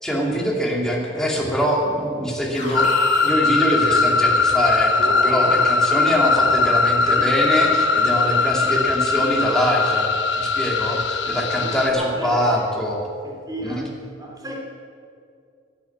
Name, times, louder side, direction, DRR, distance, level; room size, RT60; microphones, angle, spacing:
voice 1, 0.0-2.9 3.2-13.0 13.6-13.9, equal, 5° left, -2 dB, 2.4 m, -23 dB
Alarm, 2.5-4.5 4.9-8.2, left 2 dB, 40° left, 2.6 m, -34 dB
sound 1, 2.7-11.9, left 4 dB, 80° left, 0.9 m, -20 dB
voice 2, 5.3-5.7 6.4-6.6 11.6-12.7 13.2-14.5, equal, 20° right, -1 dB, 2.9 m, -34 dB
12.0 x 10.5 x 8.7 m, 2.4 s
head